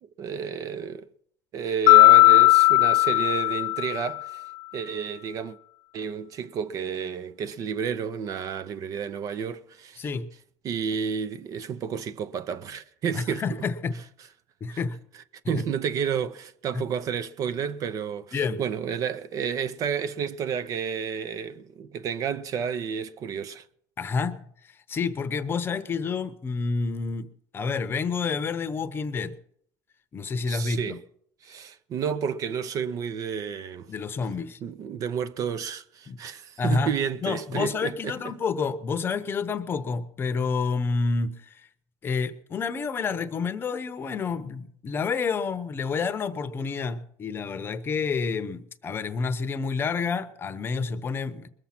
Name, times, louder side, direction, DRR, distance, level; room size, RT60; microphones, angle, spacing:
voice 1, 0.2-1.1 1.5-4.4 4.7-5.6 5.9-10.0 10.6-13.4 14.7-14.8 15.5-23.6 30.5-31.0 31.4-33.9 34.6-38.1, right 7 dB, 40° right, 0.7 m, -31 dB
Mallet percussion, 1.9-4.2, left 21 dB, 60° left, 0.5 m, -17 dB
voice 2, 13.1-14.0 14.6-15.0 15.5-15.6 16.7-16.8 18.3-18.6 24.0-29.4 30.1-31.0 33.9-34.6 36.1-36.2 36.6-36.9 37.2-41.7 42.0-51.5, left 5 dB, 25° left, 0.8 m, -29 dB
21.5 x 7.3 x 5.9 m
cardioid pair, 135°, 9 cm